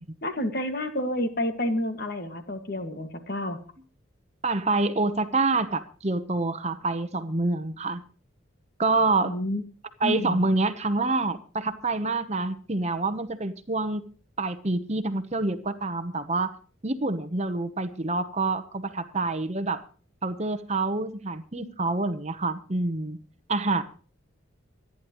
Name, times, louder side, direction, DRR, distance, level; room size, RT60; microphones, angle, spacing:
voice 1, 0.2-3.6 9.2-9.6 10.0-10.4, left 1 dB, 50° left, 1.9 m, -29 dB
voice 2, 4.4-8.0 8.8-9.3 10.0-14.0 14.4-16.6 16.8-19.8 20.2-23.2 23.5-23.8, right 3 dB, 30° right, 1.0 m, -27 dB
25.5 x 10.5 x 3.1 m
head